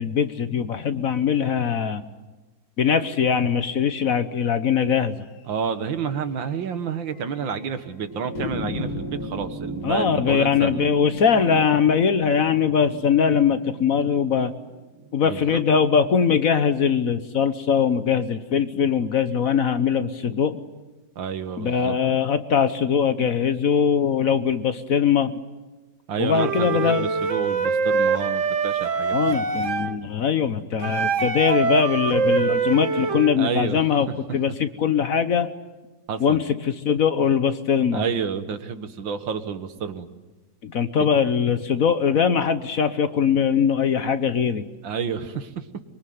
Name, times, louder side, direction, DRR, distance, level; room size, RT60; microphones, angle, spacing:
voice 1, 0.0-2.0 2.8-5.1 9.8-14.5 15.1-20.6 21.6-25.4 26.2-27.1 29.1-35.5 36.2-38.0 40.6-44.6, left 7 dB, 55° left, 11 dB, 1.3 m, -21 dB
sound 1, 5.5-5.7 6.0-6.1 6.4-6.5 7.1-7.6 8.4-13.1, left 7 dB, 85° left, 2.1 m, -38 dB
voice 2, 5.5-10.9 15.2-15.6 21.2-22.0 26.1-29.4 33.4-33.8 36.1-36.4 37.9-40.1 44.8-45.7, right 6 dB, 85° right, 10 dB, 2.1 m, -29 dB
sound 2, 8.0-16.7 17.9-18.0, right 3 dB, 25° right, 0.4 m, -37 dB
Wind instrument woodwind instrument, 26.3-30.0 30.8-33.4, right 5 dB, 45° right, 1.5 m, -24 dB
24.0 x 23.5 x 9.5 m, 1.2 s
omnidirectional pair, 2.0 m